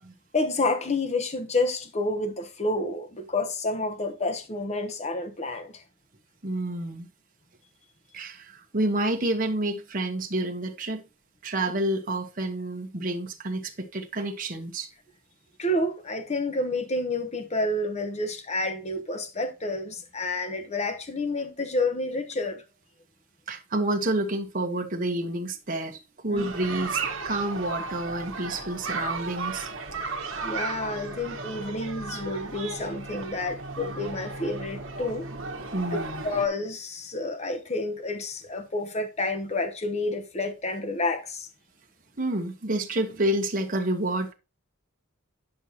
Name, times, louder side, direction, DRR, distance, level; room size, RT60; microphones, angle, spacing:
voice 1, 0.3-5.8 15.6-22.6 26.3-26.5 30.4-35.3 35.8-41.5, left 2 dB, 35° left, 1.0 m, -29 dB
voice 2, 6.4-7.1 8.1-11.0 11.4-14.9 23.5-29.7 35.7-36.3 42.2-44.3, right 1 dB, 40° right, 1.1 m, -29 dB
sound 1, 26.4-36.5, right 4 dB, 70° right, 1.3 m, -35 dB
10.0 x 6.2 x 2.8 m
head